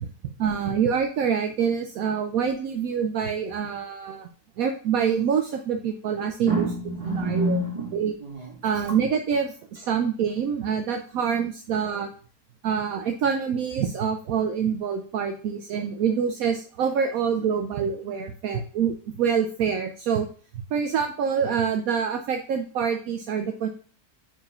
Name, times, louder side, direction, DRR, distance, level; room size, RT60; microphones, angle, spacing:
voice 1, 0.4-4.3 4.6-6.6 7.1-7.6 7.9-8.1 8.6-12.1 12.6-20.3 20.7-23.7, right 7 dB, 70° right, 6 dB, 1.0 m, -26 dB
voice 2, 6.4-9.0, right 2 dB, 20° right, -2 dB, 2.2 m, -29 dB
4.9 x 4.8 x 5.4 m, 0.41 s
omnidirectional pair, 1.6 m